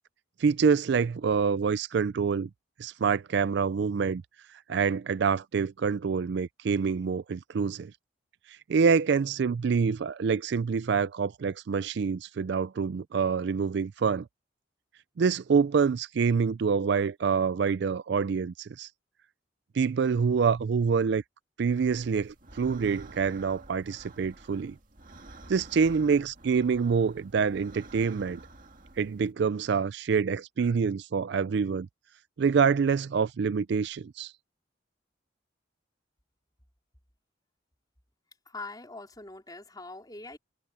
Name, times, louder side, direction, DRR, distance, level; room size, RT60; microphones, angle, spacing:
voice 1, 0.4-2.5 2.8-4.2 4.7-7.9 8.5-14.3 15.2-18.9 19.7-21.2 21.6-24.8 25.5-28.4 29.0-31.9 32.4-34.3, right 5 dB, 60° right, 0.4 m, -26 dB
sound 1, 21.7-29.3, right 2 dB, 45° right, 2.0 m, -50 dB
voice 2, 38.5-40.4, left 3 dB, 20° left, 4.3 m, -43 dB
head